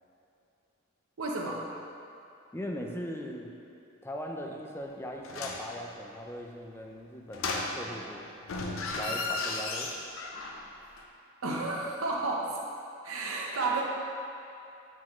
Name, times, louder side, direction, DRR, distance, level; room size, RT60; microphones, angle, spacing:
voice 1, 1.2-1.7 11.4-12.6 13.0-13.8, right 3 dB, 85° right, -2 dB, 0.8 m, -31 dB
voice 2, 2.5-3.6 4.0-8.3 8.9-9.9, equal, 10° left, 1 dB, 0.5 m, -39 dB
sound 1, 5.2-5.7 7.3-8.1 8.4-10.7 11.0-11.1, left 3 dB, 75° left, 0.6 m, -34 dB
9.3 x 4.6 x 3.1 m, 2.7 s
head